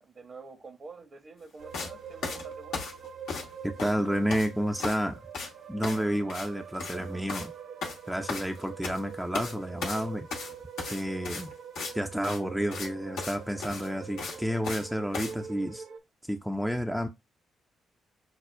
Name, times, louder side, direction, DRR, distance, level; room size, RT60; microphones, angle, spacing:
voice 1, 0.0-2.9, right 3 dB, 45° right, 0.9 m, -48 dB
sound 1, 1.6-16.0, right 7 dB, 65° right, 0.5 m, -45 dB
sound 2, 1.7-1.9 2.2-3.5 3.8-4.5 4.8-5.1 5.3-5.5 5.8-6.0 6.3-6.5 6.7-7.0 7.3-7.5 7.8-9.0 9.3-9.5 9.8-11.9 12.2-12.4 12.7-12.9 13.2-13.3 13.6-14.9 15.1-15.3, left 4 dB, 65° left, 0.8 m, -36 dB
voice 2, 3.6-5.2 5.7-7.5 8.1-10.3 10.9-11.5 11.9-15.8 16.3-17.1, equal, ahead, 0.5 m, -30 dB
6.1 x 2.1 x 2.2 m
hypercardioid pair, 40°, 0 cm